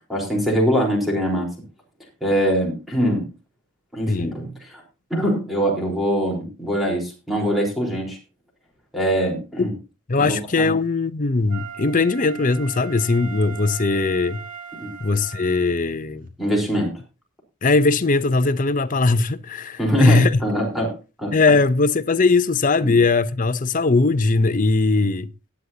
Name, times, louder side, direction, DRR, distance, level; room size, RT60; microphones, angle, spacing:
voice 1, 0.1-1.5 2.2-3.3 3.9-4.8 5.1-8.2 8.9-9.7 10.2-10.7 14.8-14.9 16.4-17.0 19.8-21.4 22.8-23.0, equal, ahead, 3.9 m, -23 dB
voice 2, 10.1-14.4 15.0-16.3 17.6-20.4 21.3-25.3, left 3 dB, 40° left, 0.6 m, -19 dB
Wind instrument woodwind instrument, 11.5-15.8 16.3-16.4, right 7 dB, 40° right, 2.1 m, -39 dB
18.5 x 9.7 x 2.8 m
head